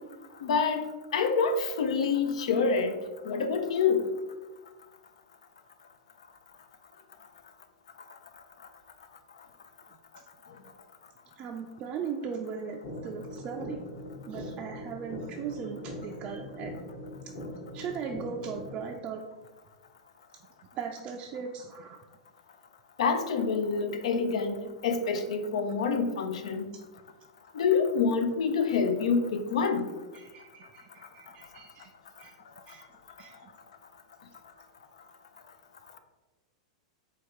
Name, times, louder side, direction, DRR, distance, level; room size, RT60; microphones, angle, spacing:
voice 1, 0.4-3.0 3.3-4.0 23.0-24.6 24.8-26.7 27.6-29.8, left 5 dB, 85° left, 8 dB, 0.5 m, -26 dB
voice 2, 11.4-13.8 14.3-16.8 17.7-19.2 20.7-22.0 30.1-31.9 32.2-32.3 32.7-32.9 33.2-33.5, right 6 dB, 30° right, 1 dB, 0.3 m, -38 dB
sound 1, 12.8-18.8, left 1 dB, 55° left, 1.3 m, -41 dB
4.6 x 2.3 x 4.5 m, 1.2 s
supercardioid pair, 140°, 3 cm